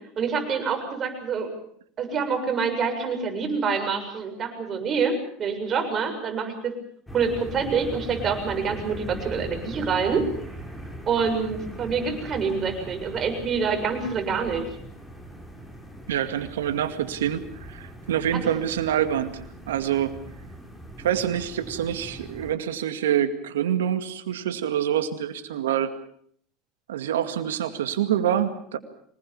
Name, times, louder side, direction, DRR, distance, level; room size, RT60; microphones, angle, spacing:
voice 1, 0.2-1.5 2.0-6.7 7.1-10.3 11.1-14.7, right 5 dB, 40° right, 5 dB, 7.2 m, -26 dB
sound 1, 7.1-22.5, right 1 dB, 10° left, 7.1 m, -40 dB
voice 2, 16.1-19.3 19.7-20.1 21.0-25.9 26.9-28.8, right 10 dB, 85° right, 9 dB, 2.2 m, -26 dB
25.5 x 19.5 x 7.2 m, 0.64 s
hypercardioid pair, 85°, 0 cm